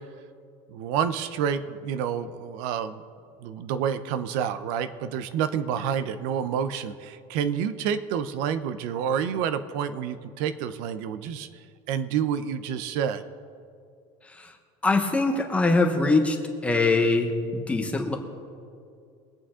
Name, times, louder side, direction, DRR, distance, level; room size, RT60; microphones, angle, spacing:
voice 1, 0.7-3.0 3.4-11.5 11.9-13.2, right 8 dB, 65° right, 11 dB, 0.7 m, -28 dB
voice 2, 14.8-16.4 16.6-18.2, left 3 dB, 10° left, 4 dB, 1.0 m, -23 dB
22.5 x 8.5 x 3.7 m, 2.3 s
cardioid pair, 175°, 14 cm